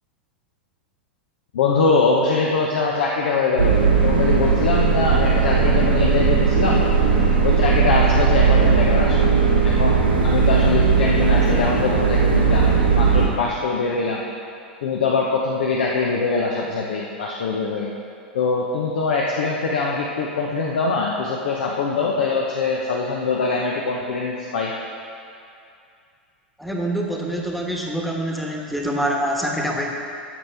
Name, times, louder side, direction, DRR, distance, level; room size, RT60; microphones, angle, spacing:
voice 1, 1.5-6.9 7.4-9.3 9.6-14.2 14.8-17.9 18.3-24.7, left 4 dB, 65° left, -2 dB, 0.8 m, -23 dB
sound 1, 3.6-13.3, right 5 dB, 85° right, 2.1 m, -17 dB
voice 2, 26.6-29.9, right 1 dB, ahead, -1 dB, 1.3 m, -25 dB
13.5 x 6.5 x 3.5 m, 2.5 s
figure-of-eight pair, 90°, 6 cm